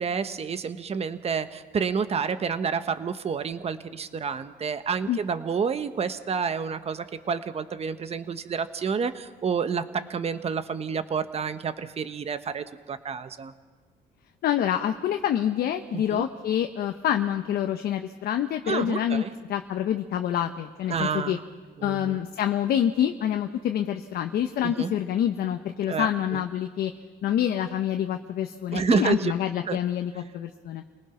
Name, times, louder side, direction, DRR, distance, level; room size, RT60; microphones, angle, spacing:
voice 1, 0.0-13.5 15.9-16.3 18.7-19.3 20.9-21.4 21.8-22.2 24.6-24.9 25.9-26.4 28.7-29.3 29.7-29.8, right 6 dB, 35° right, 11 dB, 1.3 m, -29 dB
voice 2, 14.4-19.2 19.5-21.4 21.8-26.9 27.2-30.8, left 10 dB, 65° left, 6 dB, 1.1 m, -27 dB
29.0 x 19.5 x 5.9 m, 1.4 s
cardioid pair, 110°, 17 cm